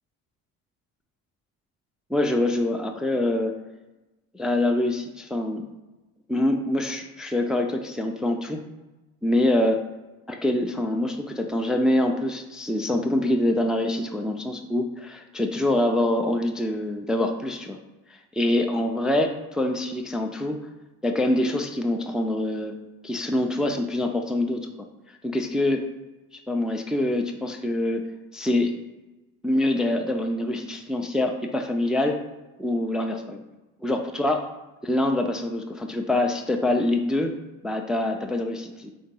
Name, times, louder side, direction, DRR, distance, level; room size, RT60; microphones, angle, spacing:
voice 1, 2.1-3.5 4.3-5.6 6.3-8.6 9.2-9.8 10.3-17.8 18.3-20.6 21.0-22.8 23.0-24.6 25.2-25.8 26.5-28.0 28.3-28.7 29.4-32.1 32.6-33.4 33.8-34.5 34.8-37.3 37.6-38.9, left 1 dB, ahead, 3 dB, 0.4 m, -25 dB
3.8 x 2.7 x 3.7 m, 1.1 s
supercardioid pair, 65°, 40 cm